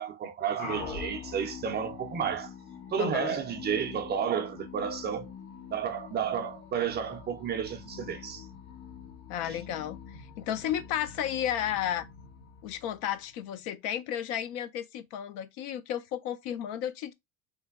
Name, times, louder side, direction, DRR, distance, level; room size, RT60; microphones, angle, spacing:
voice 1, 0.0-2.5 2.9-5.3 5.7-8.5 9.4-9.6, right 8 dB, 25° right, 0.4 m, -32 dB
sound 1, 0.6-13.4, left 6 dB, 75° left, 1.3 m, -44 dB
voice 2, 3.0-3.4 9.3-12.1 12.6-17.1, left 10 dB, 60° left, 0.5 m, -33 dB
3.2 x 2.2 x 3.3 m
supercardioid pair, 115°, 42 cm